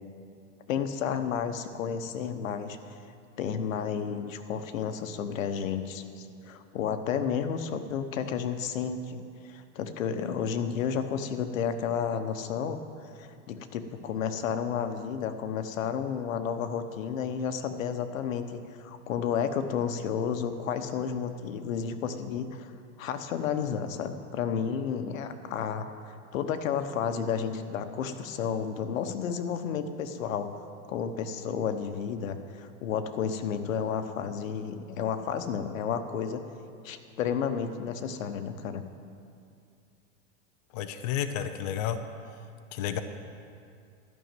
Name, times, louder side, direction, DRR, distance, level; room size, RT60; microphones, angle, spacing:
voice 1, 0.7-3.0 3.4-12.8 13.2-22.7 23.0-30.5 30.9-36.4 36.8-38.8, left 7 dB, 85° left, 9 dB, 1.1 m, -32 dB
voice 2, 40.7-42.0 42.7-43.0, left 10 dB, 35° left, 8 dB, 0.4 m, -31 dB
12.5 x 6.4 x 9.1 m, 2.4 s
supercardioid pair, 170°, 39 cm